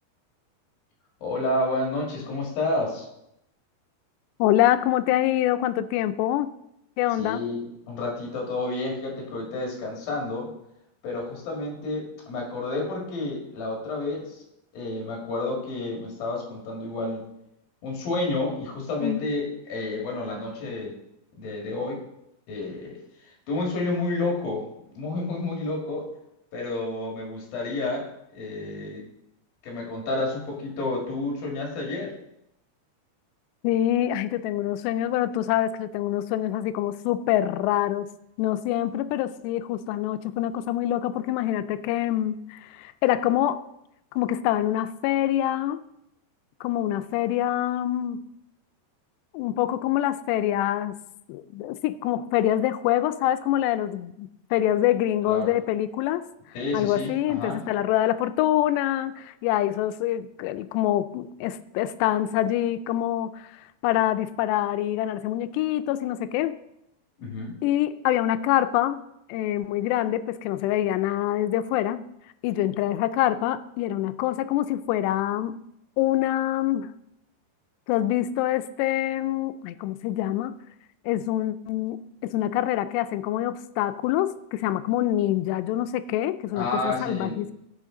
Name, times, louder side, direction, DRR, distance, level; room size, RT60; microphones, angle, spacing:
voice 1, 1.2-3.1 7.2-10.5 11.0-14.4 14.7-17.2 17.8-20.9 21.4-22.0 22.5-22.9 23.5-24.7 24.9-26.1 26.5-28.1 28.3-29.0 29.6-32.1 55.3-55.6 56.6-57.6 67.2-67.6 86.5-87.4, left 2 dB, 60° left, -1 dB, 3.6 m, -30 dB
voice 2, 4.4-6.5 7.0-7.5 19.0-19.2 33.6-38.1 38.4-43.6 44.2-45.8 46.6-48.2 49.3-51.0 51.3-56.2 56.7-63.5 63.8-66.6 67.6-69.0 69.3-72.0 72.4-75.6 76.0-76.9 77.9-80.5 81.1-87.5, left 13 dB, 85° left, 13 dB, 2.7 m, -25 dB
16.0 x 6.3 x 3.8 m, 0.80 s
omnidirectional pair, 4.8 m